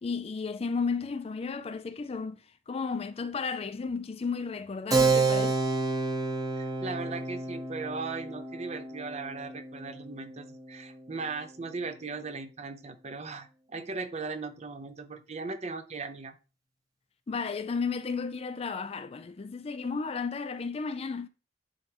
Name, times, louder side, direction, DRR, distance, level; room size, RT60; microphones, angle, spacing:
voice 1, 0.0-2.4 2.7-5.6 17.3-21.3, left 5 dB, 35° left, 0.4 m, -33 dB
Keyboard (musical), 4.9-11.0, right 3 dB, 20° right, 1.1 m, -30 dB
voice 2, 6.6-16.3, right 4 dB, 40° right, 0.8 m, -38 dB
10.0 x 3.4 x 2.9 m
head